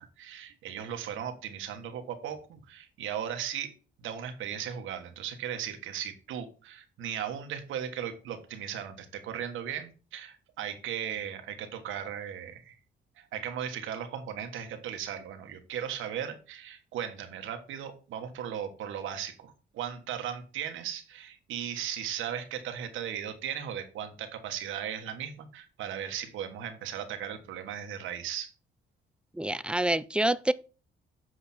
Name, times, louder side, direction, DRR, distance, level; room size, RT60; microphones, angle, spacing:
voice 1, 0.0-3.7 4.0-12.8 13.2-28.5, right 9 dB, 85° right, 1.4 m, -37 dB
voice 2, 29.3-30.5, right 1 dB, 5° right, 0.4 m, -27 dB
8.0 x 5.1 x 4.2 m
cardioid pair, 90°, 20 cm